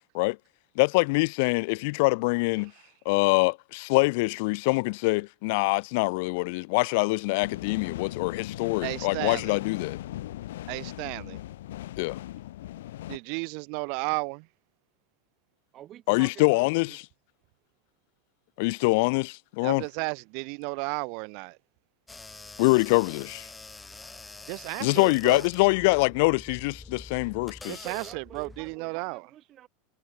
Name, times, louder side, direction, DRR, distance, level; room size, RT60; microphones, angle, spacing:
voice 1, 0.8-2.7 3.1-10.0 12.0-12.2 16.1-17.0 18.6-19.8 22.6-23.5 24.8-27.8, left 27 dB, 50° left, 0.5 m, -24 dB
voice 2, 2.6-2.9 8.8-9.6 10.7-11.4 13.1-14.5 19.6-21.6 24.5-25.4 27.7-29.3, right 40 dB or more, 45° right, 0.5 m, -34 dB
sound 1, 7.4-13.2, left 14 dB, 85° left, 3.3 m, -38 dB
voice 3, 15.7-17.0 27.8-29.7, right 12 dB, 25° right, 2.2 m, -47 dB
sound 2, 22.1-28.8, left 3 dB, 5° left, 1.2 m, -46 dB
supercardioid pair, 170°, 0 cm